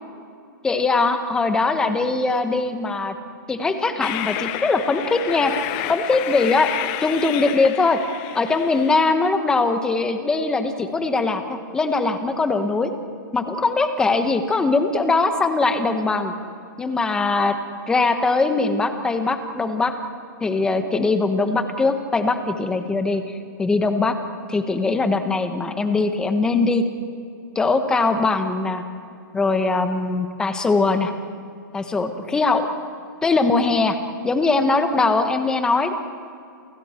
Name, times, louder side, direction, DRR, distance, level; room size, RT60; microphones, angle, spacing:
voice 1, 0.6-3.1 3.5-5.5 5.9-6.7 7.0-8.0 8.3-12.9 13.3-16.3 16.8-17.6 17.9-19.9 20.4-24.2 24.5-26.8 27.5-28.8 29.3-31.1 31.7-32.7 33.2-34.0 34.2-35.9, left 3 dB, 5° left, 7 dB, 1.2 m, -21 dB
Train, 4.0-9.0, left 13 dB, 25° left, 0.8 m, -30 dB
29.0 x 29.0 x 4.5 m, 2.5 s
hypercardioid pair, 170°, 11 cm